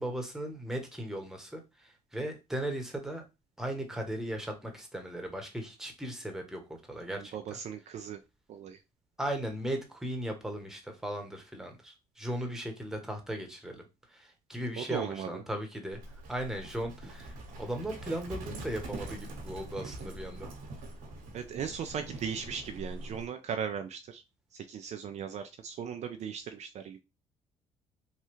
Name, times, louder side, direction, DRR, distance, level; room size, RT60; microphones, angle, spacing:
voice 1, 0.0-3.2 3.6-6.6 6.9-7.3 9.2-13.8 14.1-16.0 16.3-20.5, right 1 dB, 5° right, 3 dB, 1.0 m, -37 dB
voice 2, 7.1-8.2 8.5-8.8 14.8-15.4 19.8-20.0 21.3-24.2 24.5-27.0, right 7 dB, 50° right, 7 dB, 0.4 m, -38 dB
Livestock farm animals working animals, 15.9-23.3, right 2 dB, 75° right, 1.0 m, -44 dB
3.2 x 2.3 x 3.1 m, 0.26 s
supercardioid pair, 65°, 15 cm